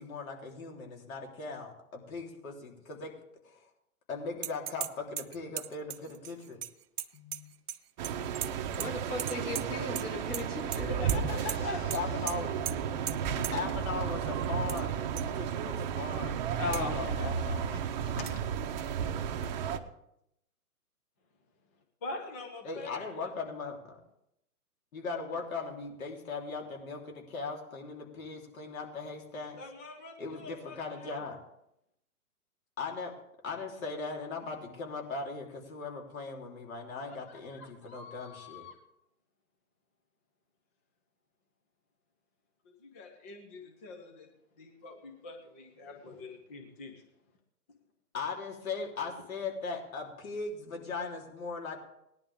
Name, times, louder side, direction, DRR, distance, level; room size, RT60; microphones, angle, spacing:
voice 1, 0.0-3.1 3.4-3.6 4.1-6.6 11.9-12.5 13.5-16.4 16.6-17.7 22.6-24.0 24.9-29.6 30.2-31.4 32.8-33.1 33.4-38.6 48.1-51.8, left 4 dB, 65° left, 0 dB, 3.6 m, -39 dB
sound 1, 4.4-4.9 5.2-7.8 8.0-8.9 9.2-10.1 10.3-10.8 11.1-11.2 11.5-11.6 11.9-12.0 12.3-12.4 12.7-12.8 13.1-13.2 13.4-13.5 14.4-14.8 15.2-15.3 15.8-15.9 16.7-16.8 18.3-18.4, right 10 dB, 80° right, 0.7 m, -37 dB
voice 2, 7.1-7.5 10.7-11.9 17.7-18.3 22.0-23.1 29.6-31.2 37.1-38.8 42.7-44.3 44.6-46.9, left 3 dB, 10° left, 4 dB, 0.4 m, -44 dB
sound 2, 8.0-19.8, right 8 dB, 30° right, 0.8 m, -33 dB
voice 3, 8.8-10.9 16.6-17.2, left 3 dB, 80° left, 0 dB, 3.9 m, -36 dB
18.5 x 10.5 x 3.5 m, 0.80 s
hypercardioid pair, 140°, 45 cm